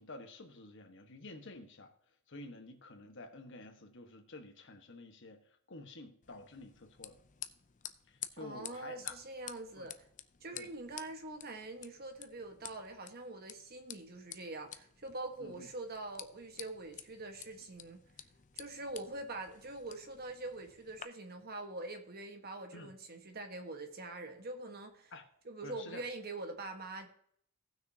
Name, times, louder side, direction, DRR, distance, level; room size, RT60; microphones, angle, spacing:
voice 1, 0.0-1.9 2.3-7.2 8.1-9.2 9.8-9.9 10.5-10.7 15.4-15.7 22.7-22.9 25.1-25.2 25.6-26.0, left 2 dB, 55° left, 1.4 m, -50 dB
sound 1, 6.2-21.0, left 10 dB, 35° left, 0.5 m, -51 dB
voice 2, 8.4-10.1 10.4-18.0 18.5-25.1 25.4-27.1, right 2 dB, 45° right, 1.3 m, -44 dB
17.5 x 6.4 x 2.8 m
head